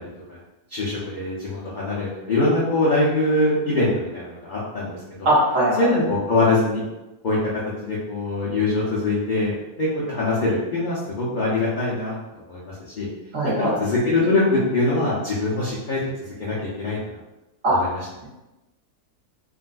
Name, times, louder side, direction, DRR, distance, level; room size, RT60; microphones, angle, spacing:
voice 1, 0.7-5.3 5.8-6.8 7.2-7.4 7.8-9.5 9.8-12.6 13.0-13.1 13.6-16.0 16.4-17.0 17.8-18.0, left 2 dB, 85° left, -8 dB, 0.4 m, -23 dB
voice 2, 5.2-5.9 13.3-13.7 17.6-17.8, right 1 dB, 55° right, -7 dB, 1.3 m, -20 dB
3.6 x 2.3 x 2.5 m, 1.0 s
omnidirectional pair, 1.7 m